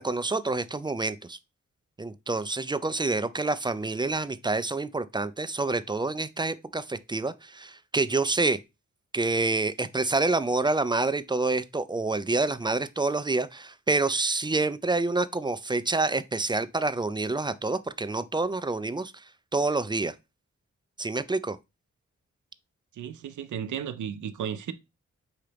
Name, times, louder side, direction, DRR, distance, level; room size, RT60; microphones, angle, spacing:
voice 1, 0.0-1.4 2.0-8.6 9.1-19.2 19.5-20.1 21.0-21.6, right 3 dB, 15° right, 0.3 m, -27 dB
voice 2, 22.9-24.7, right 8 dB, 65° right, 0.6 m, -34 dB
4.8 x 2.8 x 3.3 m
supercardioid pair, 40°, 32 cm